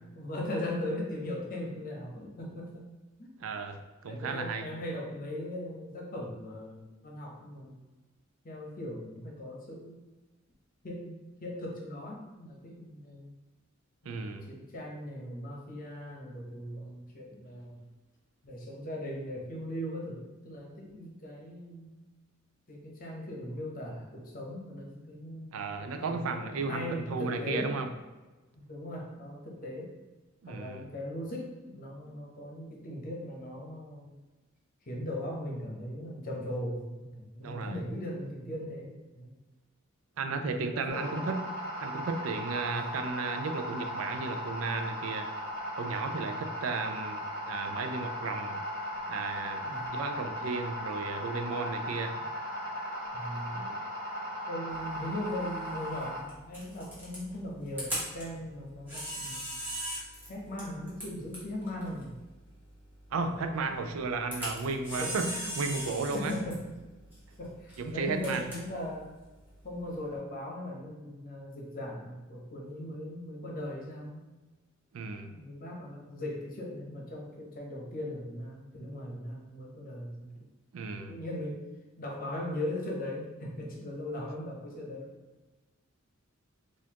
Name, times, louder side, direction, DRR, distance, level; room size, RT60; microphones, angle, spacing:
voice 1, 0.1-2.9 3.2-3.3 4.1-7.8 8.4-10.0 10.8-13.3 14.0-17.9 18.4-22.0 22.7-25.7 26.0-27.8 28.5-29.9 30.5-34.1 34.9-39.3 40.2-41.4 42.7-43.0 46.2-46.5 49.6-50.0 53.1-53.6 54.5-59.5 60.2-62.1 63.1-63.6 64.9-65.2 66.1-66.7 67.4-69.1 69.6-74.2 75.3-80.4 80.8-81.7 82.0-85.1, left 1 dB, 45° left, -1 dB, 0.8 m, -39 dB
voice 2, 3.4-4.7 14.1-14.5 25.5-27.9 30.4-30.9 37.4-37.8 40.2-41.5 41.8-45.3 45.8-48.6 49.1-49.6 49.9-52.2 53.5-53.8 63.1-66.3 67.8-68.5 74.9-75.4 80.7-81.2, right 4 dB, 85° right, 6 dB, 0.4 m, -34 dB
sound 1, 40.9-56.2, equal, 15° left, 1.1 m, -37 dB
Camera, 54.7-70.2, equal, 10° right, 1.2 m, -42 dB
4.1 x 2.5 x 2.8 m, 1.2 s
head